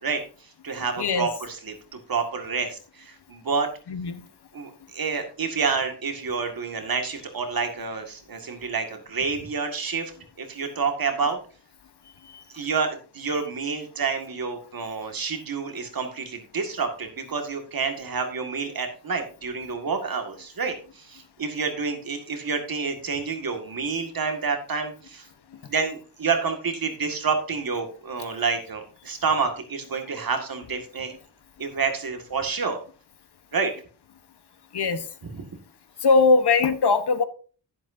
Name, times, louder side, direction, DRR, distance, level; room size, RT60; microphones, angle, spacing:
voice 1, 0.0-3.7 4.5-10.1 10.4-11.4 12.5-25.3 25.7-31.1 31.6-32.8 33.5-33.7 35.2-35.5, right 5 dB, 60° right, 5 dB, 2.0 m, -28 dB
voice 2, 3.9-4.2 34.7-35.0 36.0-37.2, left 4 dB, 80° left, 11 dB, 1.2 m, -20 dB
11.0 x 10.5 x 2.7 m, 0.37 s
wide cardioid pair, 175°, 39 cm